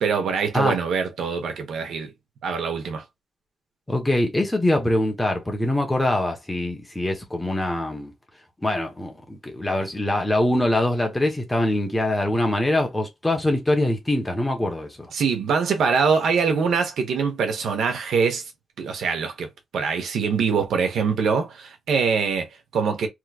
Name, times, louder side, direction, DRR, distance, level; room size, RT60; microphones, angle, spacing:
voice 1, 0.0-2.1 2.4-3.0 15.1-18.4 18.8-23.1, right 5 dB, 90° right, 1.1 m, -23 dB
voice 2, 3.9-8.1 8.6-15.1, left 1 dB, 10° left, 1.0 m, -23 dB
3.6 x 3.2 x 2.4 m
wide cardioid pair, 170°, 0 cm